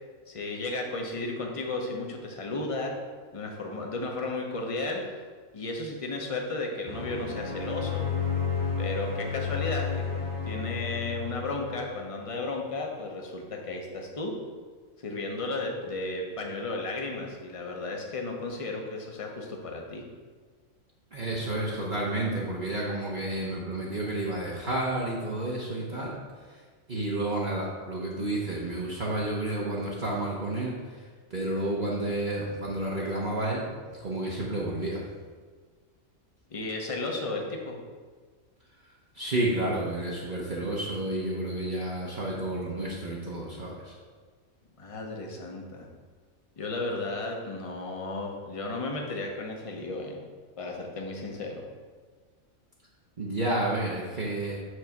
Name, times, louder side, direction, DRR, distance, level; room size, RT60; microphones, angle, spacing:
voice 1, 0.3-3.0 3.3-5.2 5.5-8.0 8.8-14.4 15.0-20.0 36.5-37.8 44.8-45.9 46.6-50.2 50.6-51.7, left 2 dB, 30° left, 1 dB, 0.8 m, -34 dB
sound 1, 6.8-12.0, left 5 dB, 80° right, 2.2 m, -32 dB
voice 2, 21.1-26.1 26.4-26.6 26.9-33.6 34.0-35.0 39.1-44.0 53.2-54.6, right 1 dB, 40° right, -5 dB, 1.0 m, -31 dB
6.3 x 4.0 x 5.9 m, 1.5 s
omnidirectional pair, 1.4 m